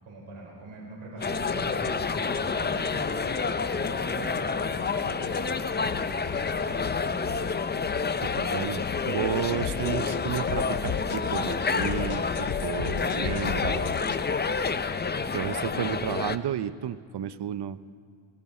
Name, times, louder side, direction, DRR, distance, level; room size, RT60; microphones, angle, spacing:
voice 1, 0.0-7.9 15.7-15.9, right 2 dB, 75° right, -3 dB, 4.7 m, -42 dB
sound 1, 1.2-14.2, left 8 dB, 75° left, 0.8 m, -38 dB
sound 2, 1.2-16.4, left 5 dB, 20° left, 0.4 m, -29 dB
voice 2, 8.2-14.0 15.3-17.9, right 10 dB, 55° right, 15 dB, 0.6 m, -32 dB
19.0 x 16.0 x 4.3 m, 2.2 s
cardioid pair, 100°, 50 cm